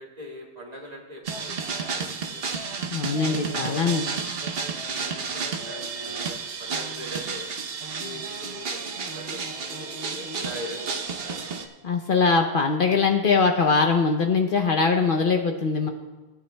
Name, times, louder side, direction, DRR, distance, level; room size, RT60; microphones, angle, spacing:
voice 1, 0.0-2.6 3.2-4.2 5.0-7.5 8.0-9.4 9.7-11.0 11.2-11.4, equal, 35° right, -3 dB, 2.1 m, -41 dB
sound 1, 1.2-11.7, right 5 dB, 60° right, 1.0 m, -32 dB
voice 2, 2.9-4.1 11.8-15.9, left 4 dB, 55° left, 4 dB, 0.8 m, -22 dB
18.0 x 9.5 x 2.2 m, 1.2 s
omnidirectional pair, 1.1 m